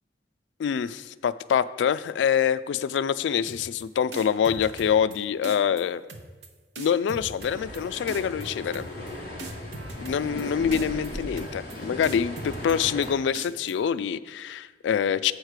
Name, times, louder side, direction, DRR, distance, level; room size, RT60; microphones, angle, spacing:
voice 1, 0.6-6.0 6.8-8.9 10.0-15.3, left 7 dB, 85° left, 15 dB, 0.3 m, -25 dB
sound 1, 3.5-3.8 4.1-5.2 5.4-5.8 6.1-6.5 6.7-7.8 8.1-8.5 8.7-9.1 9.4-10.4 10.7-11.1 11.4-11.7 12.0-13.1 13.3-13.7, right 3 dB, 70° right, 0.9 m, -40 dB
sound 2, 7.4-13.1, left 1 dB, 50° left, 2.8 m, -37 dB
8.0 x 4.7 x 6.5 m, 1.4 s
head